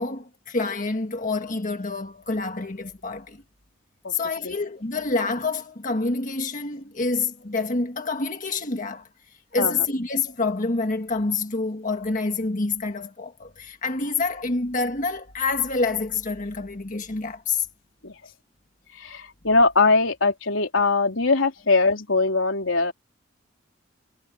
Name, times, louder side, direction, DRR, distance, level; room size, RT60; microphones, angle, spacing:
voice 1, 0.0-3.4 4.1-17.7, left 3 dB, 45° left, 1.6 m, -27 dB
voice 2, 19.0-22.9, left 3 dB, 90° left, 3.6 m, -21 dB
head